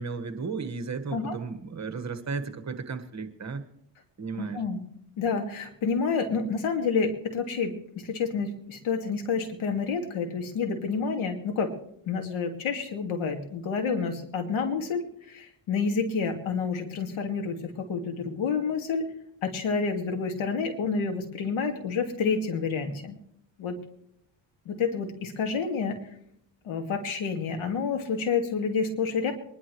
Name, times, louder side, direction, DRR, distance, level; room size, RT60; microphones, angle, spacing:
voice 1, 0.0-3.6 4.2-4.6, right 4 dB, 35° right, 7 dB, 1.5 m, -34 dB
voice 2, 4.3-4.8 5.2-11.7 12.1-19.0 19.4-23.2 23.6-23.8 24.7-26.0 26.6-29.3, left 5 dB, 90° left, 4 dB, 2.2 m, -29 dB
24.0 x 11.0 x 3.1 m, 0.74 s
cardioid pair, 85°, 48 cm